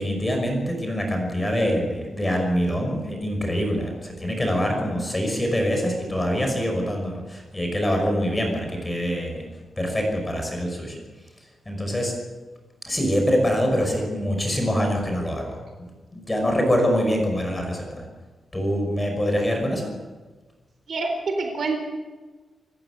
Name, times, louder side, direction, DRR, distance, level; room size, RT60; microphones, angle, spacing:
voice 1, 0.0-9.4 9.8-11.0 11.7-12.1 12.8-15.6 16.1-18.0 18.5-19.9, equal, 10° left, 2 dB, 5.8 m, -24 dB
voice 2, 20.9-21.8, right 3 dB, 45° right, 4 dB, 3.9 m, -26 dB
28.0 x 14.5 x 8.3 m, 1.3 s
wide cardioid pair, 180°, 0 cm